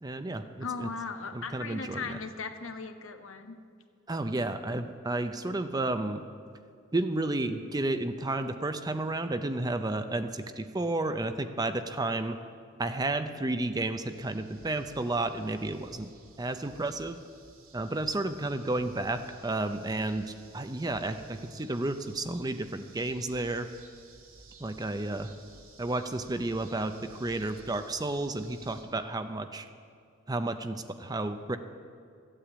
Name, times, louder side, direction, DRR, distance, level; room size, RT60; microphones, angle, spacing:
voice 1, 0.0-0.9 1.3-2.2 4.1-6.2 6.9-12.4 12.8-16.1 16.4-17.2 17.7-23.7 24.6-25.3 25.8-29.7 30.3-31.6, right 2 dB, 20° right, 9 dB, 0.5 m, -32 dB
voice 2, 0.6-3.6, left 4 dB, 65° left, 7 dB, 1.0 m, -38 dB
sound 1, 14.1-28.8, right 3 dB, 70° right, 2.4 m, -55 dB
14.0 x 8.8 x 8.5 m, 2.4 s
head